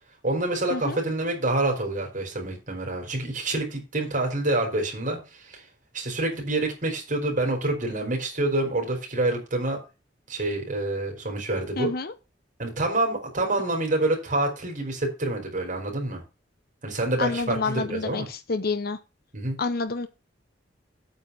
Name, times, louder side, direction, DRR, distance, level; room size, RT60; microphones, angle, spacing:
voice 1, 0.2-5.6 5.9-9.8 10.3-11.9 12.6-16.2 16.8-18.3 19.3-19.6, right 2 dB, 45° right, 2 dB, 4.8 m, -27 dB
voice 2, 11.8-12.1 17.2-19.0 19.6-20.1, left 4 dB, 60° left, 9 dB, 0.8 m, -28 dB
9.0 x 5.8 x 7.0 m, 0.30 s
head